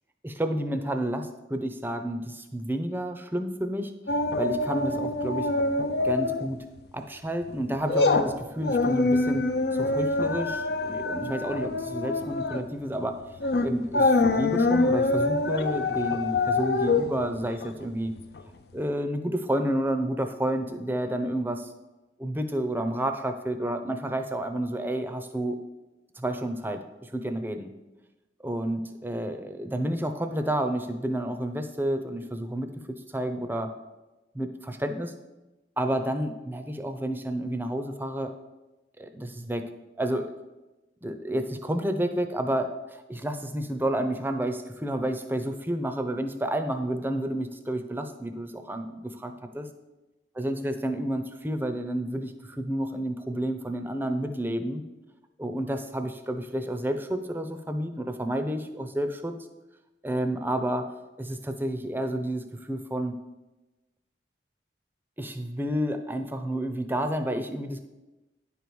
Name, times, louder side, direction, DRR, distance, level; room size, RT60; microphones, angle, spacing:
voice 1, 0.2-3.9 4.4-5.5 6.0-6.6 6.9-13.2 13.6-18.1 18.7-21.7 22.2-25.6 26.2-27.7 28.4-33.7 34.3-35.1 35.8-38.3 39.0-39.7 40.0-40.3 41.0-49.7 50.3-54.8 55.4-59.3 60.0-60.9 61.2-63.2 65.2-67.8, right 1 dB, 10° right, 8 dB, 0.6 m, -30 dB
sound 1, 4.1-6.5 6.8-7.0 7.4-18.4 18.7-18.8, left 2 dB, 60° left, 0.6 m, -25 dB
9.9 x 4.7 x 7.0 m, 1.1 s
head